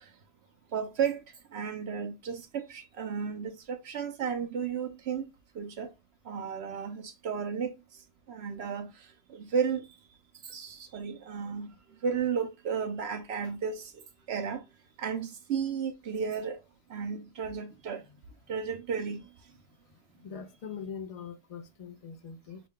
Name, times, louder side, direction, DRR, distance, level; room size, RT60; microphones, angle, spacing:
voice 1, 0.7-1.2 1.5-5.3 5.6-5.9 6.3-7.7 8.3-8.9 9.3-9.8 10.5-11.7 12.0-13.9 14.3-14.6 15.0-16.6 16.9-18.0 18.5-19.2, right 6 dB, 65° right, 0.8 m, -33 dB
voice 2, 20.2-22.6, left 6 dB, 55° left, 0.4 m, -42 dB
5.9 x 2.2 x 3.6 m
omnidirectional pair, 1.3 m